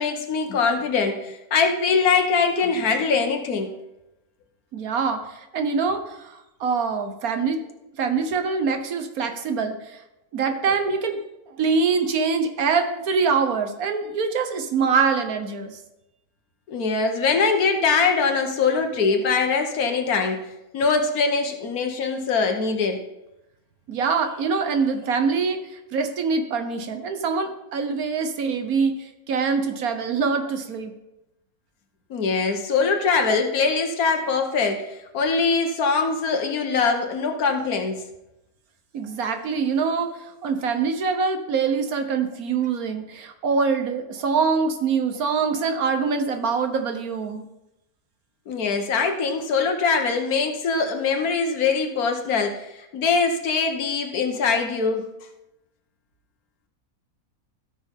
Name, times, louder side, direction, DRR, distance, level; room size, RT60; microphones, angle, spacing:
voice 1, 0.0-3.7 16.7-20.5 20.7-23.0 32.1-38.0 48.5-55.1, left 5 dB, 80° left, 4 dB, 1.7 m, -22 dB
voice 2, 4.7-7.6 8.0-10.0 10.3-11.2 11.5-15.8 23.9-30.9 38.9-47.4, right 5 dB, 75° right, 6 dB, 1.5 m, -24 dB
17.0 x 6.0 x 3.7 m, 0.91 s
omnidirectional pair, 1.5 m